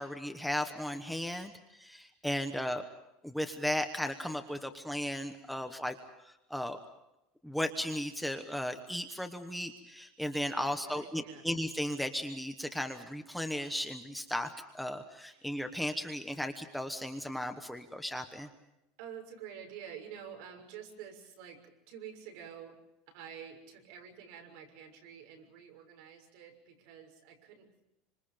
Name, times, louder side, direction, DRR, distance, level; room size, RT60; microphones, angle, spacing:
voice 1, 0.0-2.8 3.2-6.8 7.4-18.5, left 1 dB, ahead, 5 dB, 1.1 m, -36 dB
voice 2, 10.7-11.4 15.2-15.4 19.0-22.8 23.1-27.7, right 8 dB, 60° right, 4 dB, 6.5 m, -48 dB
27.5 x 26.0 x 5.2 m, 0.90 s
cardioid pair, 170°, 0 cm